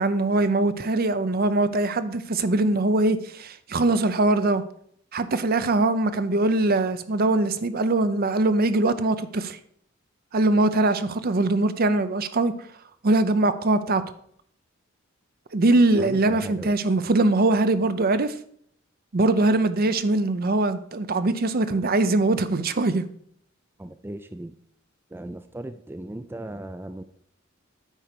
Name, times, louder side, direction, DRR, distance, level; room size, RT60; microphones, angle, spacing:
voice 1, 0.0-4.6 5.1-9.6 10.3-12.6 13.0-14.0 15.5-18.3 19.1-23.0, right 2 dB, 50° right, 0.6 m, -22 dB
voice 2, 16.0-16.7 23.8-24.5 25.1-27.0, right 1 dB, 10° right, 0.4 m, -37 dB
9.2 x 4.4 x 6.7 m
head